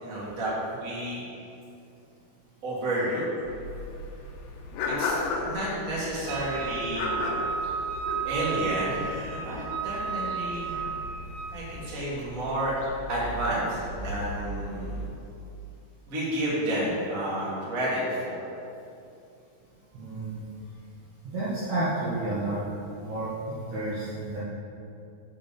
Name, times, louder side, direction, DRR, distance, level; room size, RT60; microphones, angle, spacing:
voice 1, 0.0-1.2 2.6-3.2 4.9-7.0 8.2-10.8 11.5-12.7 13.1-15.0 16.1-18.4, right 1 dB, 30° right, -8 dB, 1.5 m, -31 dB
sound 1, 3.4-15.1, left 2 dB, 85° left, 3.1 m, -36 dB
Wind instrument woodwind instrument, 6.3-11.6, right 7 dB, 80° right, 2.7 m, -33 dB
voice 2, 19.9-20.5 21.2-22.6 23.0-24.4, right 2 dB, 60° right, -10 dB, 2.1 m, -31 dB
7.4 x 6.7 x 5.2 m, 2.6 s
omnidirectional pair, 5.2 m